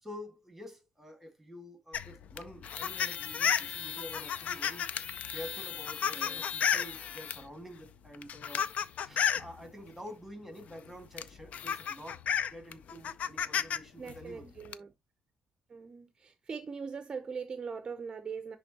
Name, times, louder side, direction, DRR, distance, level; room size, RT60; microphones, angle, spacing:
voice 1, 0.0-4.9 5.3-8.7 9.0-12.2 12.5-14.5, left 1 dB, ahead, 2.0 m, -48 dB
sound 1, 1.9-7.4 8.1-9.5 10.7-10.8 11.2-13.8 14.1-14.7, left 8 dB, 55° left, 0.5 m, -33 dB
voice 2, 6.1-6.4 14.0-14.9 15.7-18.6, right 5 dB, 30° right, 0.6 m, -41 dB
10.5 x 3.5 x 2.9 m
cardioid pair, 150°, 3 cm